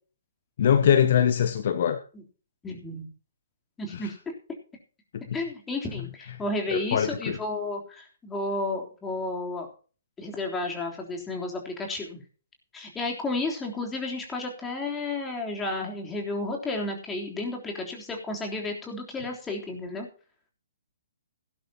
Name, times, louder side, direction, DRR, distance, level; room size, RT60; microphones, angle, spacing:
voice 1, 0.6-2.0 3.9-4.1 5.1-5.2 6.7-7.4, left 8 dB, 45° left, 12 dB, 0.9 m, -22 dB
voice 2, 2.6-3.1 3.8-4.2 5.3-9.7 10.2-12.2 12.7-20.1, left 2 dB, 10° left, 1 dB, 3.5 m, -32 dB
17.0 x 11.5 x 2.9 m, 0.38 s
figure-of-eight pair, 125°, 0 cm